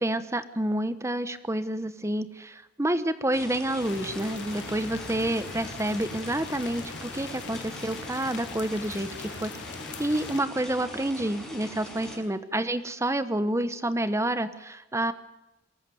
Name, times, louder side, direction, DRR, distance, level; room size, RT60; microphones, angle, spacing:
voice 1, 0.0-9.5 10.0-15.1, right 1 dB, 15° right, 12 dB, 1.1 m, -29 dB
sound 1, 3.3-12.2, left 1 dB, 5° left, 6.4 m, -42 dB
sound 2, 3.8-10.4, left 5 dB, 70° left, 0.9 m, -41 dB
23.0 x 14.0 x 9.2 m, 1.0 s
head